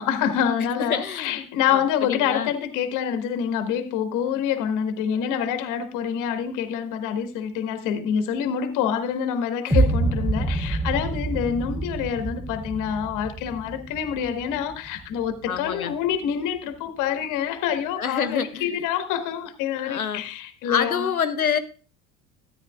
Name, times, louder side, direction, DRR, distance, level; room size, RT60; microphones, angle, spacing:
voice 1, 0.0-21.1, left 8 dB, 45° left, 1.3 m, -26 dB
voice 2, 0.8-1.4 1.7-2.5 9.6-9.9 15.5-16.0 18.0-18.7 19.8-20.2 20.7-21.6, left 7 dB, 85° left, 0.7 m, -27 dB
sound 1, 9.7-15.7, right 2 dB, 5° right, 1.0 m, -27 dB
13.5 x 9.1 x 2.3 m
figure-of-eight pair, 65°, 41 cm